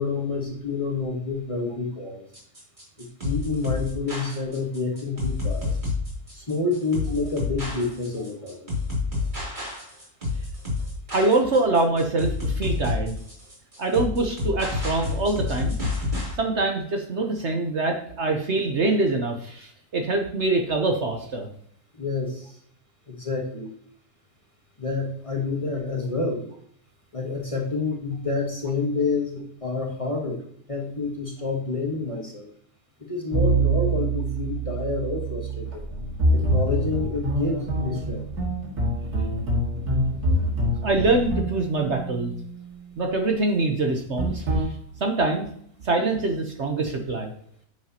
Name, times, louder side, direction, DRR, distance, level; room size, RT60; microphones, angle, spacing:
voice 1, 0.0-2.3 3.0-5.8 6.3-8.7 21.9-22.6 23.1-23.7 24.8-26.5 27.1-32.5 33.1-35.8 36.3-38.3, left 3 dB, 25° left, 0 dB, 1.3 m, -28 dB
sound 1, 2.3-16.3, left 3 dB, 30° right, 3.1 m, -29 dB
voice 2, 11.1-13.2 13.8-15.8 16.4-21.5 40.8-42.3 43.0-44.6 45.0-45.5 45.8-47.3, right 2 dB, 50° right, 3 dB, 1.1 m, -24 dB
sound 2, 33.3-42.7 44.2-44.6, right 1 dB, 75° right, 2.5 m, -25 dB
9.9 x 6.3 x 2.8 m, 0.64 s
omnidirectional pair, 1.7 m